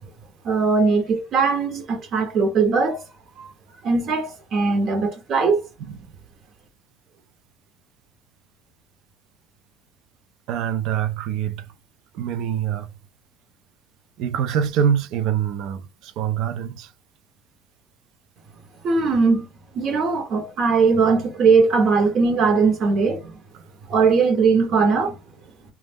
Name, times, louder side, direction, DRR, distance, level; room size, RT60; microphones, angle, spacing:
voice 1, 0.4-3.0 3.4-3.5 3.8-5.7 18.8-19.4 19.7-23.4 23.9-25.2, right 4 dB, 55° right, 1.0 m, -20 dB
voice 2, 10.5-11.7 12.1-12.9 14.2-16.9, right 8 dB, 70° right, 0.4 m, -24 dB
2.3 x 2.0 x 3.4 m
supercardioid pair, 100°, 0 cm